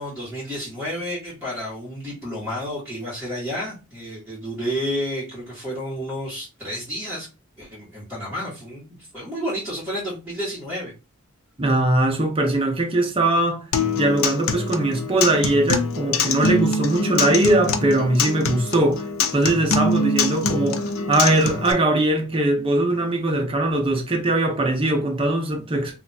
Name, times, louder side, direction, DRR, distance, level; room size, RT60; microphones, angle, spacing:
voice 1, 0.0-7.3 7.6-8.9 9.1-10.9, equal, 5° right, 1.4 m, -30 dB
voice 2, 11.6-13.6 13.9-19.1 19.3-26.0, right 1 dB, 25° right, 0.7 m, -21 dB
Acoustic guitar, 13.7-21.7, left 3 dB, 85° left, 0.5 m, -24 dB
2.7 x 2.4 x 4.1 m
head